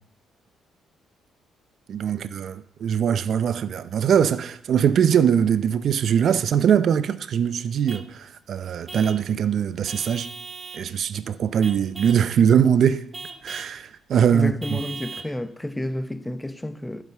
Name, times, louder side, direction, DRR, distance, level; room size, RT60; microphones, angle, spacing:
voice 1, 1.9-10.3 10.7-13.1 13.4-14.8, right 8 dB, 60° right, 0.6 m, -22 dB
Vehicle horn car horn honking / Truck, 7.9-8.1 8.9-9.3 9.9-10.9 11.6-12.3 13.1-13.8 14.6-15.3, right 4 dB, 30° right, 1.1 m, -38 dB
voice 2, 14.3-17.0, left 1 dB, 10° left, 0.8 m, -30 dB
12.0 x 7.4 x 7.9 m
cardioid pair, 90°, 0 cm